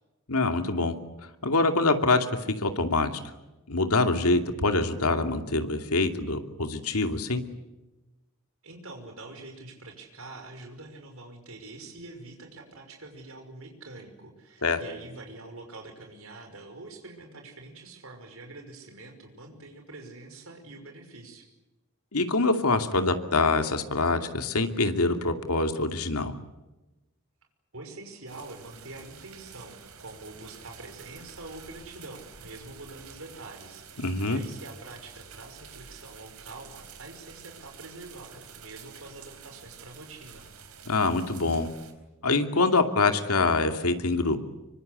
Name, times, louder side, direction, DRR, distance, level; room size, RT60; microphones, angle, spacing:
voice 1, 0.3-0.9 1.4-3.1 3.7-7.4 14.6-14.8 22.1-26.3 34.0-34.4 40.9-41.7 42.2-44.4, left 3 dB, 90° left, 6 dB, 2.6 m, -25 dB
voice 2, 8.6-21.5 27.7-40.4, right 2 dB, 65° right, 4 dB, 5.8 m, -45 dB
sound 1, 28.3-41.9, right 6 dB, 85° right, 4.3 m, -49 dB
25.5 x 24.5 x 8.2 m, 1.0 s
head